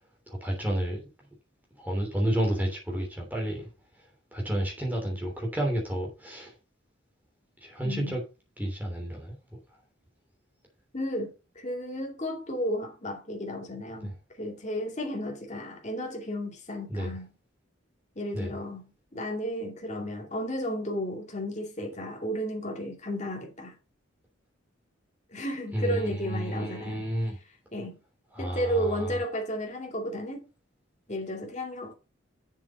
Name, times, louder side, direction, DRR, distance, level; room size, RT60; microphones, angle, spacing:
voice 1, 0.3-1.0 1.8-3.7 4.3-6.5 7.6-8.2 8.6-9.3 14.0-14.1 16.9-17.1 18.3-18.5 25.7-27.4 28.4-29.1, right 1 dB, 10° right, 3.1 m, -30 dB
voice 2, 7.8-8.2 10.9-17.3 18.2-23.8 25.3-27.1 27.7-28.0 28.4-30.4 31.1-31.9, equal, 35° left, 2.3 m, -33 dB
7.2 x 6.8 x 5.3 m
head